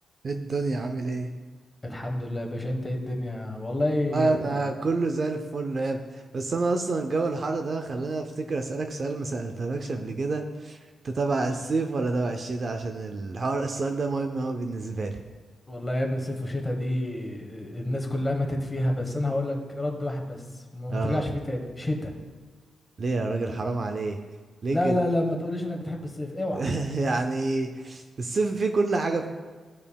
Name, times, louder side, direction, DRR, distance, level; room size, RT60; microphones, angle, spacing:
voice 1, 0.2-1.3 4.1-10.8 11.0-15.2 20.9-21.2 23.0-24.2 24.6-25.0 26.6-29.3, right 3 dB, 40° right, 5 dB, 0.5 m, -28 dB
voice 2, 1.8-4.6 15.7-22.1 24.7-26.6, left 1 dB, 15° left, 2 dB, 1.2 m, -29 dB
14.5 x 5.3 x 2.3 m, 1.5 s
wide cardioid pair, 135°, 0 cm